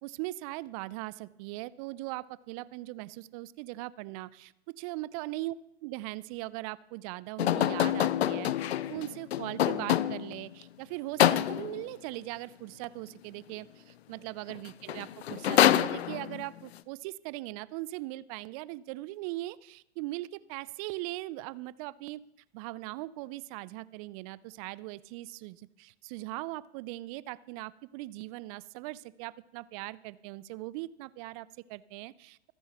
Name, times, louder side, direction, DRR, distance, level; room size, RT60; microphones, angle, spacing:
voice 1, 0.0-5.5 5.8-22.2 22.5-32.5, right 18 dB, 35° right, 19 dB, 0.5 m, -40 dB
sound 1, 7.4-10.4 11.2-11.8 14.5-14.6 14.9-16.5, left 12 dB, 65° left, 0.6 m, -26 dB
25.5 x 10.0 x 3.0 m, 0.77 s
figure-of-eight pair, 105°, 33 cm